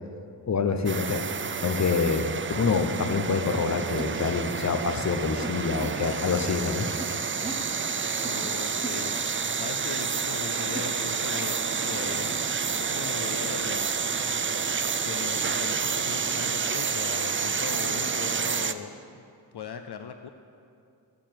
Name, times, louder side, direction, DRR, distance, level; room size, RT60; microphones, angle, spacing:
voice 1, 0.5-1.3 1.6-2.3 2.6-6.9, left 5 dB, 40° left, 7 dB, 0.9 m, -26 dB
sound 1, 0.9-18.7, right 6 dB, 30° right, 0.4 m, -29 dB
sound 2, 3.6-3.7 4.0-4.3 5.4-5.9 7.0-7.6 8.2-8.5 8.8-9.2 10.7-10.9, right 2 dB, 10° right, 0.8 m, -38 dB
voice 2, 8.2-12.4 12.8-14.1 14.9-19.2 19.5-20.3, left 7 dB, 70° left, 7 dB, 0.6 m, -39 dB
15.0 x 6.8 x 7.6 m, 2.4 s
wide cardioid pair, 100°, 42 cm